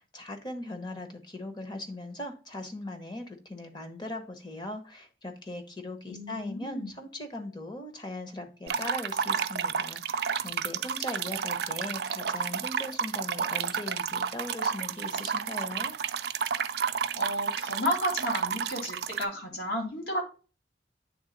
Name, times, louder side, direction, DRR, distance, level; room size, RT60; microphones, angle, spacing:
voice 1, 0.0-15.9, left 1 dB, 25° left, 6 dB, 1.0 m, -39 dB
voice 2, 6.1-6.9 17.2-20.2, equal, 70° left, -1 dB, 2.2 m, -32 dB
sound 1, 8.7-19.2, right 7 dB, 60° right, 0.4 m, -31 dB
8.6 x 3.6 x 3.9 m, 0.36 s
head